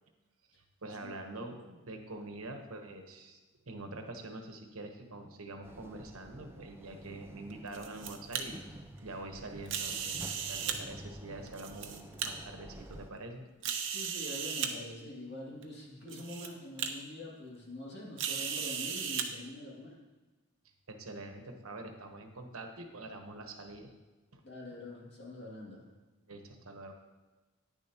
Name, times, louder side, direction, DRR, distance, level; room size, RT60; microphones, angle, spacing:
voice 1, 0.8-3.4 3.7-8.6 9.0-13.4 20.9-23.9 24.3-24.4 26.3-26.9, right 2 dB, 85° right, 5 dB, 1.1 m, -45 dB
sound 1, 5.6-13.1, right 1 dB, 10° right, 0.4 m, -50 dB
sound 2, 7.5-8.4 9.7-10.8 11.5-12.3 12.9-13.0 13.6-14.7 15.6-15.7 16.1-16.5 16.8-16.9 18.2-19.3, right 7 dB, 60° right, 0.8 m, -36 dB
voice 2, 13.9-20.0 24.4-25.9, left 1 dB, 50° left, -4 dB, 2.4 m, -45 dB
10.0 x 9.8 x 2.9 m, 1.2 s
head